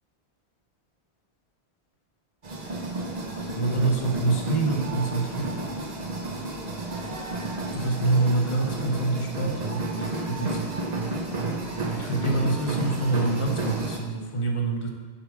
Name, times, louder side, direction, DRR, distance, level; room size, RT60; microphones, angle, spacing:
sound 1, 2.4-14.0, right 2 dB, 40° right, 0.8 m, -31 dB
voice 1, 3.5-5.6 7.7-10.6 12.0-14.9, right 2 dB, 30° left, 1 dB, 0.8 m, -26 dB
6.7 x 3.5 x 6.1 m, 1.5 s
omnidirectional pair, 1.1 m